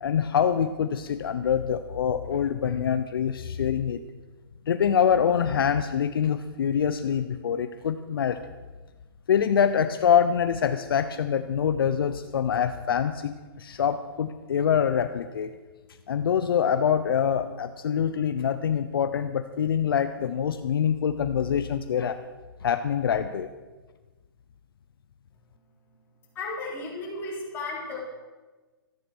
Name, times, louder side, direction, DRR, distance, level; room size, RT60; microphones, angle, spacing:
voice 1, 0.0-4.0 4.7-8.4 9.3-15.5 16.1-22.2 22.6-23.5, left 8 dB, 65° left, 10 dB, 0.8 m, -25 dB
voice 2, 26.3-28.0, left 2 dB, 15° left, -5 dB, 4.1 m, -34 dB
14.0 x 11.5 x 6.3 m, 1.3 s
hypercardioid pair, 155°, 13 cm